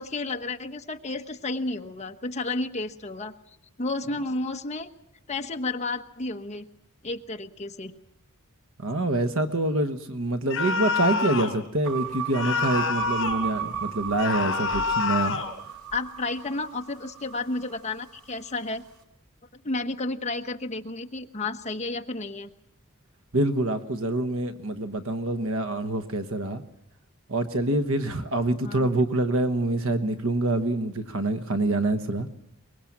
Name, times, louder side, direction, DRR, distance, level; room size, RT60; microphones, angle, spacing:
voice 1, 0.0-4.9 5.3-6.7 7.0-7.9 15.9-18.8 19.5-22.5 28.6-28.9, left 2 dB, 30° left, 5 dB, 1.2 m, -32 dB
voice 2, 8.8-15.4 23.3-26.6 27.3-32.3, right 2 dB, 65° right, 9 dB, 1.2 m, -26 dB
sound 1, 10.5-11.6 12.3-13.5 14.2-15.5, left 4 dB, 60° left, 4.0 m, -27 dB
sound 2, 11.8-18.2, right 8 dB, 85° right, 2.2 m, -35 dB
24.0 x 21.5 x 7.4 m, 0.80 s
head